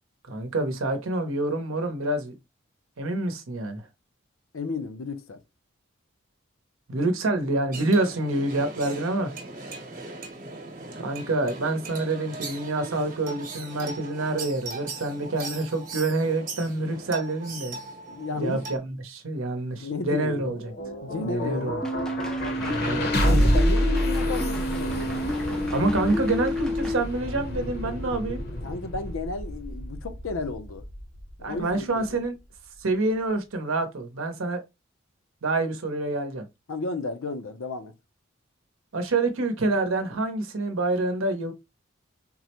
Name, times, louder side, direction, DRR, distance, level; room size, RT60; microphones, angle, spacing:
voice 1, 0.3-2.3 3.0-3.8 6.9-9.3 11.0-17.8 18.4-20.6 21.2-21.8 22.7-23.5 25.7-28.4 31.4-32.3 32.8-34.6 35.4-36.4 38.9-41.5, right 2 dB, 85° right, 0.7 m, -27 dB
voice 2, 4.5-5.4 18.1-18.8 19.8-20.5 21.0-21.8 23.1-25.3 26.0-26.1 28.5-30.8 31.4-32.2 36.7-37.9, left 3 dB, 85° left, 0.6 m, -33 dB
sound 1, 7.7-18.8, right 3 dB, 40° right, 0.9 m, -39 dB
sound 2, 20.2-32.2, equal, 50° left, 0.7 m, -29 dB
sound 3, 21.8-27.0, left 1 dB, 5° left, 0.3 m, -29 dB
3.7 x 2.1 x 2.8 m
head